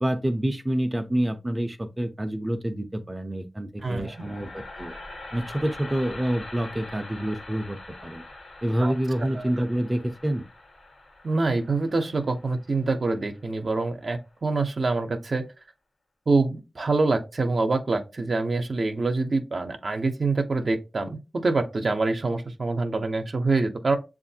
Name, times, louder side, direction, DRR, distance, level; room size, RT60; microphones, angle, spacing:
voice 1, 0.0-4.9 5.3-8.2 8.6-10.4, right 1 dB, 25° right, 0.6 m, -27 dB
sound 1, 3.8-13.9, left 2 dB, 75° left, 1.2 m, -44 dB
voice 2, 3.8-4.3 8.8-8.9 9.4-9.5 11.2-15.4 16.3-24.0, right 3 dB, 60° right, 0.6 m, -25 dB
6.7 x 2.5 x 2.7 m
cardioid pair, 50°, 0 cm